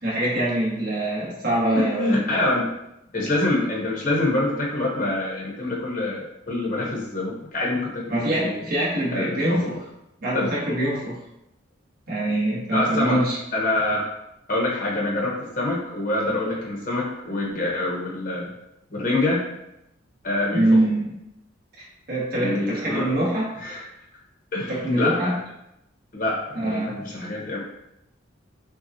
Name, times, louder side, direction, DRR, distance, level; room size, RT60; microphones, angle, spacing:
voice 1, 0.0-2.4 8.1-9.7 10.2-11.2 12.1-13.4 20.5-21.1 21.8-23.5 24.7-25.3 26.5-27.0, right 1 dB, 50° right, -6 dB, 1.4 m, -24 dB
voice 2, 1.7-2.7 3.1-8.0 8.3-8.5 9.1-9.8 10.3-10.5 12.7-13.2 13.5-14.1 14.5-18.5 18.9-19.4 20.2-20.8 22.3-23.1 23.6-23.8 24.5-25.4 26.1-27.6, left 2 dB, 45° left, -3 dB, 0.9 m, -25 dB
6.0 x 2.3 x 2.7 m, 0.85 s
head